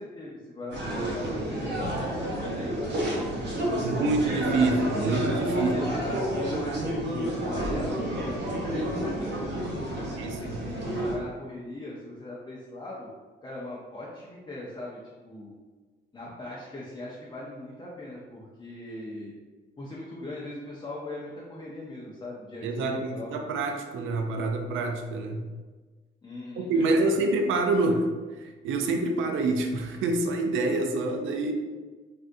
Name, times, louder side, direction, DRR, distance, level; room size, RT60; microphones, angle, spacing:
voice 1, 0.0-4.1 4.6-4.8 5.5-13.1 13.4-15.5 16.1-19.3 19.8-23.3 26.2-27.1, left 1 dB, 25° left, -5 dB, 0.6 m, -40 dB
sound 1, 0.7-11.2, right 1 dB, 60° right, 0.9 m, -30 dB
voice 2, 3.8-5.9 10.2-10.6 22.6-25.4 26.6-28.1 28.3-31.5, right 2 dB, 80° right, 4 dB, 0.4 m, -27 dB
3.5 x 2.6 x 2.6 m, 1.3 s
cardioid pair, 90°, 20 cm